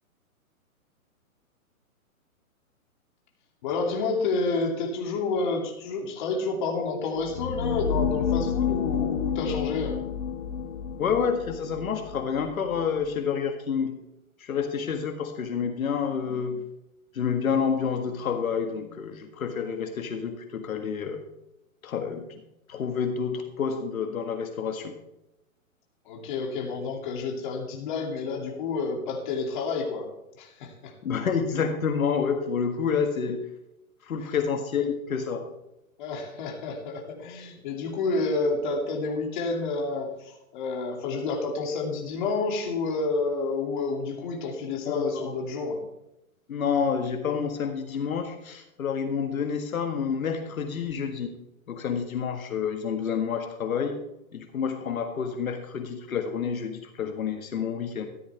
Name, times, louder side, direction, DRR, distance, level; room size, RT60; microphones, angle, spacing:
voice 1, 3.6-10.0 26.0-30.1 30.4-30.9 34.2-34.3 36.0-45.8, left 3 dB, 35° left, 1 dB, 2.6 m, -29 dB
sound 1, 7.2-13.1, left 7 dB, 55° left, 1.2 m, -30 dB
voice 2, 11.0-14.0 14.4-16.7 17.1-21.2 21.8-22.4 22.7-24.9 31.0-33.4 34.0-35.5 44.9-45.3 46.5-51.3 51.7-54.0 54.3-58.1, left 6 dB, 75° left, 5 dB, 1.8 m, -28 dB
14.0 x 12.5 x 3.5 m, 0.88 s
hypercardioid pair, 165°, 42 cm